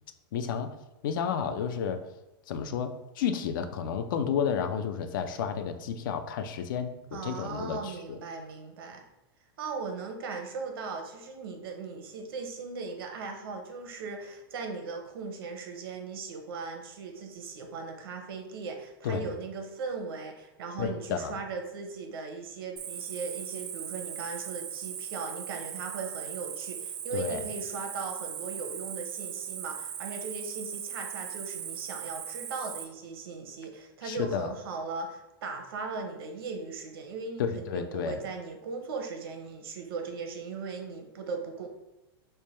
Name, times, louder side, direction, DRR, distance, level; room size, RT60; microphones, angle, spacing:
voice 1, 0.3-0.8 1.0-2.1 2.5-8.2 19.0-19.3 20.8-21.4 27.1-27.4 34.0-34.5 37.4-38.2, left 7 dB, 60° left, 9 dB, 0.4 m, -31 dB
voice 2, 7.1-9.0 9.6-41.7, right 4 dB, 75° right, 4 dB, 0.8 m, -38 dB
Cricket, 22.8-32.8, right 9 dB, 45° right, 0.4 m, -38 dB
3.3 x 2.2 x 4.2 m, 0.96 s
supercardioid pair, 165°, 13 cm